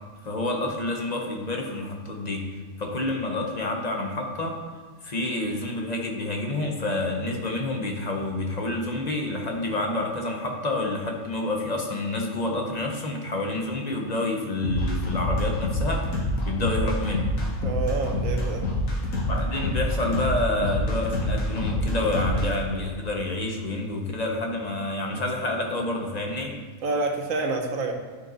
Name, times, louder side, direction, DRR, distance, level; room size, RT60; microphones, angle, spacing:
voice 1, 0.2-2.5 2.8-4.6 5.0-16.1 16.4-17.4 19.3-26.6, left 2 dB, 35° left, 1 dB, 0.9 m, -28 dB
sound 1, 14.6-22.5, left 1 dB, 85° left, 1.6 m, -26 dB
voice 2, 17.6-18.6 26.8-27.9, right 3 dB, 85° right, 3 dB, 1.3 m, -28 dB
10.0 x 4.4 x 3.9 m, 1.5 s
omnidirectional pair, 1.4 m